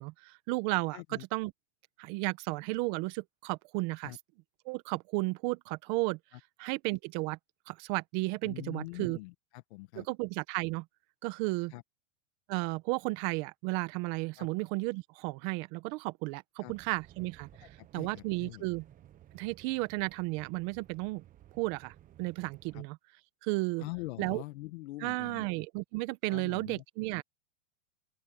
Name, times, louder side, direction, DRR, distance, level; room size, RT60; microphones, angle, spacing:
voice 1, 0.0-1.5 2.0-4.2 4.6-6.2 6.6-7.4 7.7-9.2 10.0-10.8 11.2-11.7 12.5-18.8 19.3-21.2 21.6-23.0 23.4-23.9 24.2-24.4 25.0-27.2, right 23 dB, 40° right, 1.1 m, -33 dB
voice 2, 0.9-1.2 4.0-4.2 8.4-10.0 11.7-11.8 14.4-14.5 16.6-16.7 17.6-18.6 22.7-22.8 23.8-25.5 26.3-26.8, left 20 dB, 55° left, 1.7 m, -43 dB
sound 1, 16.7-22.8, right 12 dB, 20° right, 1.1 m, -57 dB
open air
supercardioid pair, 150°, 39 cm